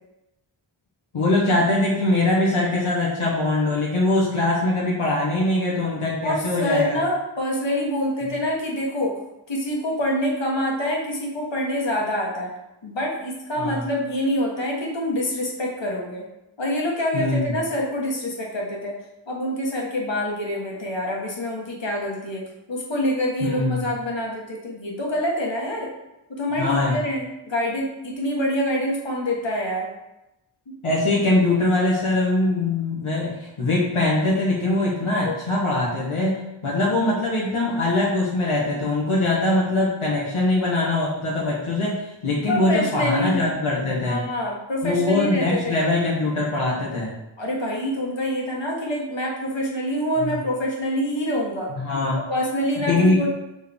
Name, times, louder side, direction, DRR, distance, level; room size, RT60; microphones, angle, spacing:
voice 1, 1.1-7.0 13.6-13.8 17.1-17.5 23.4-23.8 26.6-27.0 30.8-44.2 44.8-47.1 51.7-52.2 52.8-53.3, left 2 dB, 80° left, -5 dB, 1.3 m, -22 dB
voice 2, 6.2-9.1 9.5-12.5 12.8-16.2 16.6-19.0 19.3-25.9 26.4-29.9 35.2-35.3 42.5-43.4 44.0-45.7 47.4-51.7 52.1-53.3, left 1 dB, 60° left, -2 dB, 1.6 m, -26 dB
6.4 x 4.6 x 3.6 m, 0.92 s
wide cardioid pair, 75°, 49 cm